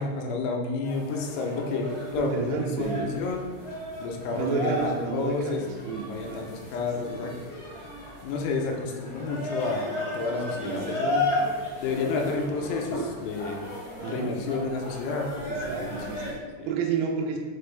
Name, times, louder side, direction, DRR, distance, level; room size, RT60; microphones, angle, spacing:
voice 1, 0.0-1.8 2.1-3.5 4.0-5.6 6.0-7.3 8.2-11.3 11.8-13.7 14.1-16.3 16.6-16.7, left 3 dB, 85° left, 1 dB, 3.1 m, -30 dB
sound 1, 0.8-16.3, left 1 dB, 45° left, 1.8 m, -35 dB
voice 2, 2.2-3.0 4.3-6.5 7.0-7.2 10.6-11.3 14.0-14.4 15.5-17.4, right 6 dB, 80° right, 2 dB, 2.4 m, -31 dB
sound 2, 2.9-13.4, equal, 65° left, 2.2 m, -46 dB
6.8 x 4.9 x 3.3 m, 1.4 s
omnidirectional pair, 5.2 m